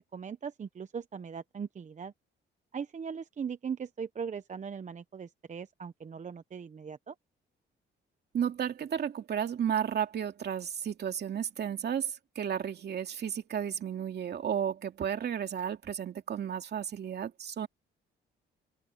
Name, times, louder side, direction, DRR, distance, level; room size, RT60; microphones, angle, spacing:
voice 1, 0.0-2.1 2.7-7.1, right 6 dB, 40° right, 0.9 m, -39 dB
voice 2, 8.3-17.7, right 8 dB, 55° right, 2.6 m, -33 dB
cardioid pair, 90°, 20 cm